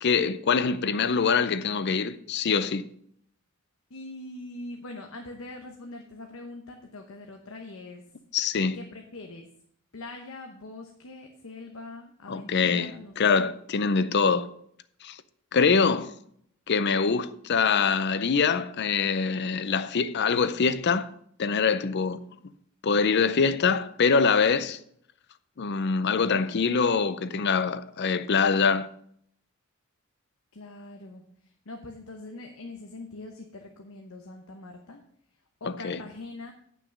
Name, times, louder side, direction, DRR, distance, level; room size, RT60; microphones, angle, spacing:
voice 1, 0.0-2.8 8.3-8.8 12.3-14.5 15.0-15.2 15.5-16.1 16.7-21.1 21.4-22.2 22.8-24.8 25.6-28.9 35.6-36.0, left 5 dB, 55° left, 0.5 m, -24 dB
voice 2, 3.9-8.1 8.7-9.5 9.9-13.3 15.5-15.7 30.5-35.0 35.6-36.5, left 2 dB, 80° left, 0.9 m, -43 dB
9.3 x 6.0 x 5.2 m
head